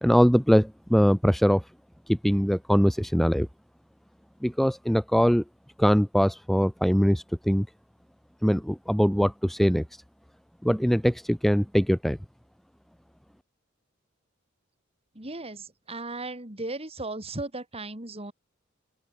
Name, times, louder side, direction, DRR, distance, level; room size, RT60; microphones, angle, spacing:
voice 1, 0.0-1.6 2.1-3.5 4.4-5.4 5.8-7.7 8.4-10.0 10.6-12.2, equal, ahead, 0.6 m, -22 dB
voice 2, 15.2-18.3, right 2 dB, 30° right, 4.1 m, -36 dB
open air
head